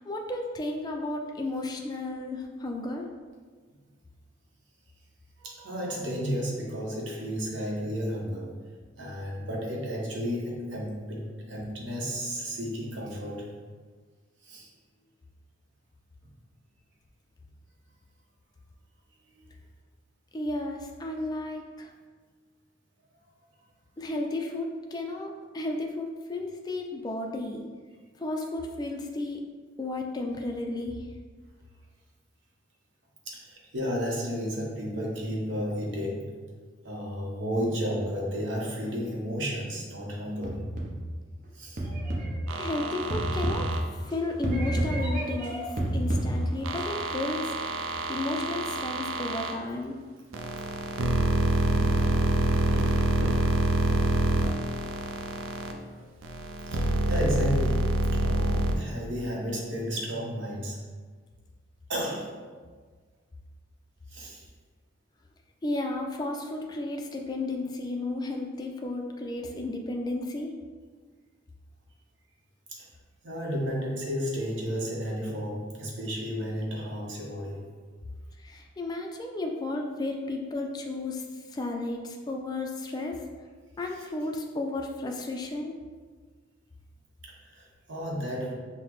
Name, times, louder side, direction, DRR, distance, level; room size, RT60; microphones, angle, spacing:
voice 1, 0.0-3.1 20.3-21.9 24.0-27.7 28.2-29.4 29.8-31.1 42.6-43.7 43.9-45.7 45.9-47.5 48.1-50.0 65.6-70.5 78.4-83.2 83.8-85.7, left 2 dB, 20° left, 2 dB, 0.3 m, -33 dB
voice 2, 5.4-8.5 9.0-13.5 14.4-14.7 19.4-19.5 33.2-36.3 36.8-40.6 41.5-41.8 56.7-60.8 61.9-62.3 64.1-64.4 72.7-72.9 73.2-77.7 87.2-88.5, equal, 65° right, -3 dB, 0.9 m, -32 dB
sound 1, 40.4-41.2 41.8-44.1 44.4-46.8, right 1 dB, 45° right, 0.7 m, -30 dB
sound 2, 42.5-43.8 46.6-49.6 50.3-55.7 56.2-58.8, right 1 dB, 90° right, 0.4 m, -27 dB
5.6 x 2.1 x 3.0 m, 1.5 s
head